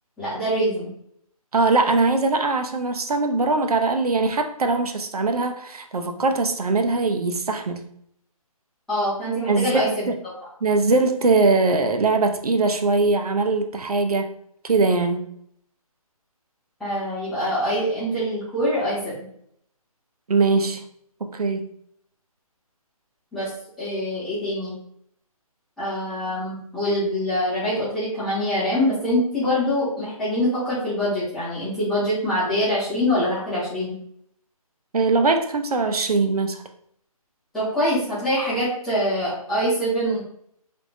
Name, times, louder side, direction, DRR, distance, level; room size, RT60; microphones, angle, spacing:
voice 1, 0.2-0.9 8.9-10.1 16.8-19.3 23.3-23.5 23.8-24.7 25.8-33.9 37.5-40.2, equal, ahead, -15 dB, 1.2 m, -24 dB
voice 2, 1.5-7.9 9.5-10.2 10.6-14.4 14.6-15.3 20.3-20.8 21.2-21.7 34.9-36.6, right 3 dB, 80° right, 6 dB, 0.6 m, -21 dB
3.4 x 3.1 x 2.6 m, 0.67 s
hypercardioid pair, 165°, 19 cm